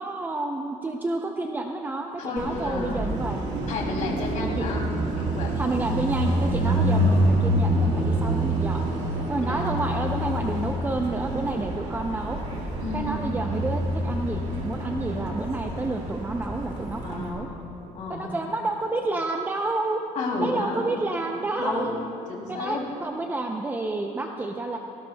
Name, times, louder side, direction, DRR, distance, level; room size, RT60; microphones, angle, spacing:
voice 1, 0.0-3.4 4.6-4.7 5.6-8.8 9.3-12.4 12.9-17.5 18.1-20.0 20.4-21.9 22.5-24.8, right 2 dB, 15° right, 3 dB, 0.5 m, -29 dB
voice 2, 2.2-3.1 3.7-4.8 5.1-5.6 9.4-9.6 12.8-13.3 17.0-18.4 20.1-20.9 21.6-21.9 22.3-22.8, left 3 dB, 65° left, -2 dB, 2.7 m, -32 dB
Car passing by, 2.4-17.3, right 1 dB, 55° right, 2.3 m, -27 dB
17.5 x 16.5 x 2.2 m, 2.8 s
cardioid pair, 140°, 14 cm